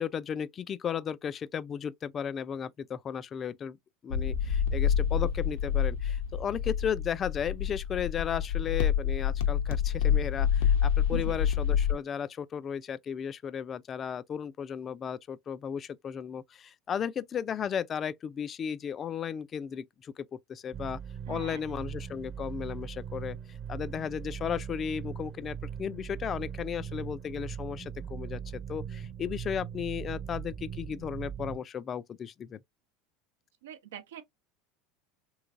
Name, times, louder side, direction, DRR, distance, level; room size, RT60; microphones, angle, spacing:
voice 1, 0.0-3.8 4.0-21.0 21.3-23.4 23.7-32.6, left 8 dB, 35° left, 0.4 m, -35 dB
sound 1, 4.1-11.9, left 8 dB, 80° left, 0.6 m, -27 dB
sound 2, 20.7-31.6, right 8 dB, 35° right, 0.4 m, -40 dB
voice 2, 21.3-21.6 33.6-34.2, right 11 dB, 85° right, 0.7 m, -42 dB
3.1 x 3.1 x 2.5 m
hypercardioid pair, 95°, 0 cm